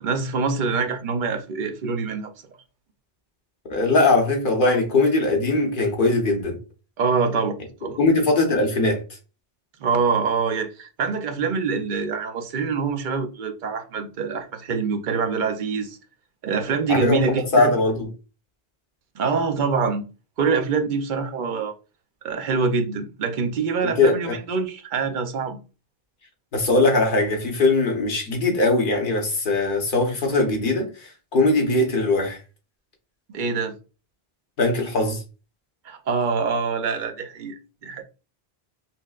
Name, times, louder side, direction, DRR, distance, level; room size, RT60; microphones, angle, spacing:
voice 1, 0.0-2.3 7.0-8.0 9.8-16.0 16.4-17.7 19.2-20.0 20.4-21.7 22.2-25.6 33.3-33.7 35.8-38.0, right 5 dB, 55° right, 0.7 m, -25 dB
voice 2, 3.7-6.6 8.0-9.0 16.9-17.2 17.5-18.1 23.8-24.3 26.5-32.4 34.6-35.2, left 2 dB, 55° left, 1.1 m, -20 dB
5.6 x 2.1 x 2.3 m
omnidirectional pair, 1.0 m